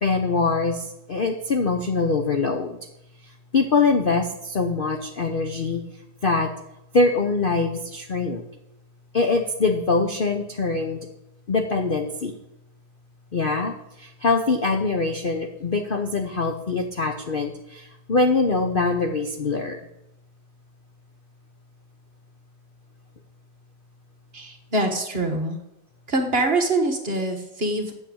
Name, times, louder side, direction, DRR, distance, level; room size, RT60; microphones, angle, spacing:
voice 1, 0.0-2.8 3.5-5.8 6.2-6.5 6.9-8.4 9.1-11.1 11.5-12.3 13.3-19.8, left 3 dB, 50° left, 5 dB, 0.7 m, -23 dB
voice 2, 24.3-25.6 26.1-27.9, right 2 dB, 35° right, 5 dB, 1.4 m, -24 dB
8.7 x 7.0 x 8.7 m, 0.87 s
omnidirectional pair, 1.9 m